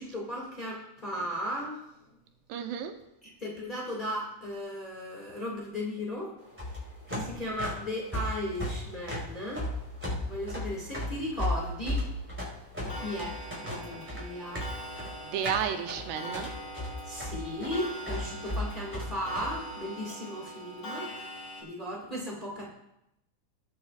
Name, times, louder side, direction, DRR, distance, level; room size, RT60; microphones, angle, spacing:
voice 1, 0.0-1.8 3.4-6.3 7.1-9.7 10.2-12.0 12.8-14.6 17.1-21.1 21.6-22.7, left 1 dB, 75° left, -4 dB, 0.4 m, -36 dB
voice 2, 2.5-2.9 15.2-16.5, right 8 dB, 80° right, 6 dB, 2.8 m, -32 dB
sound 1, 6.4-19.5, left 1 dB, 5° right, 4.3 m, -35 dB
Clock, 12.9-21.6, right 1 dB, 35° left, 3.0 m, -42 dB
19.0 x 9.0 x 2.4 m, 0.82 s
omnidirectional pair, 4.9 m